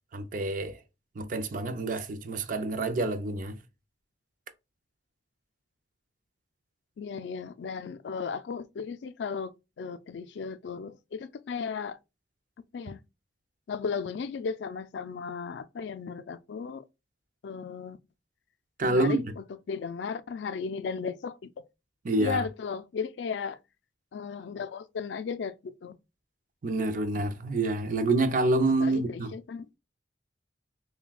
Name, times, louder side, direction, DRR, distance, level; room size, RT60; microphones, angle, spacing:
voice 1, 0.1-0.8 1.2-3.6 18.8-19.2 22.0-22.4 26.6-29.3, right 2 dB, 45° right, 0.5 m, -27 dB
voice 2, 7.0-12.0 12.7-13.0 13.7-16.8 17.4-18.0 18.8-21.5 22.2-23.6 24.1-26.0 28.8-29.7, left 5 dB, 70° left, 0.3 m, -35 dB
5.7 x 2.2 x 2.3 m
head